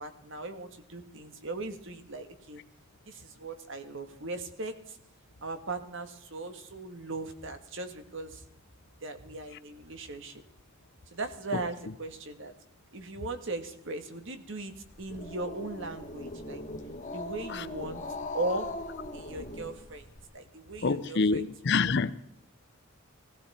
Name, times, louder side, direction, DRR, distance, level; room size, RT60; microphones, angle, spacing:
voice 1, 0.0-2.6 3.0-5.0 5.4-8.4 9.0-10.4 11.1-12.5 12.9-16.6 17.1-18.0 18.3-18.7 19.1-20.1 20.3-21.5, right 2 dB, 60° right, 1.6 m, -38 dB
Growling, 14.9-20.2, left 2 dB, 35° left, 1.9 m, -40 dB
voice 2, 20.8-22.1, left 4 dB, 55° left, 0.6 m, -27 dB
17.0 x 16.0 x 4.3 m
head